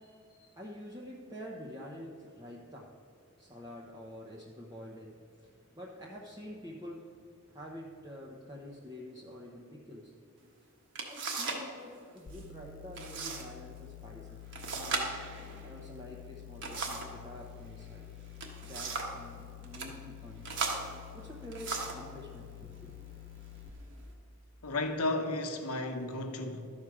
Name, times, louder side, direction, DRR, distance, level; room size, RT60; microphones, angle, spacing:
voice 1, 0.0-3.0 3.4-7.2 7.5-10.2 11.1-14.4 14.7-15.2 15.6-18.1 18.6-20.6 21.1-22.9, equal, 15° right, 0.7 m, -47 dB
sound 1, 10.4-10.5 10.9-11.7 12.0-12.4 12.9-13.5 13.8-13.9 14.5-17.2 18.2-19.2 19.6-19.9 20.4-22.1 22.8-23.0 23.6-24.1, right 4 dB, 55° right, 1.3 m, -37 dB
sound 2, 12.3-23.7, left 12 dB, 40° left, 0.5 m, -49 dB
voice 2, 24.6-26.7, left 2 dB, 85° left, 1.0 m, -33 dB
12.5 x 4.9 x 5.9 m
head